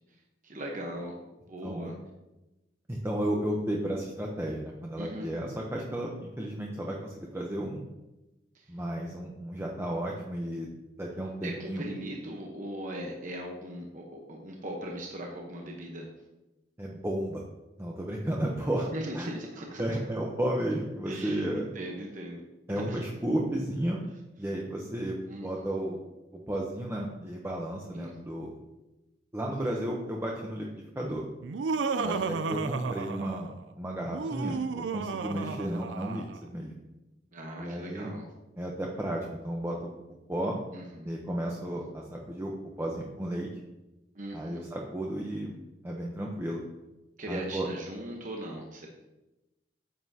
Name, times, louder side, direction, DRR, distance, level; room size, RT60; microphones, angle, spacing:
voice 1, 0.4-1.1 1.5-1.9 5.0-5.3 8.5-8.7 11.4-16.1 18.9-20.0 21.1-22.4 22.7-23.0 25.2-25.7 27.9-28.1 31.9-32.4 37.3-38.2 40.7-41.1 44.1-44.6 47.2-48.9, right 1 dB, 45° right, 0 dB, 1.0 m, -39 dB
voice 2, 2.9-7.8 8.7-10.7 11.0-11.8 16.8-17.4 17.8-19.3 19.8-21.7 22.7-24.0 24.4-26.0 26.3-28.5 29.3-31.3 32.0-36.7 37.6-38.1 38.6-39.9 40.3-40.6 41.0-42.5 42.8-43.5 44.3-45.6 45.8-46.6 47.3-47.7, right 1 dB, 15° right, -2 dB, 0.8 m, -33 dB
Laughter, 31.4-33.6 34.0-36.4, right 4 dB, 90° right, 0.4 m, -33 dB
9.3 x 7.9 x 2.8 m, 1.0 s
head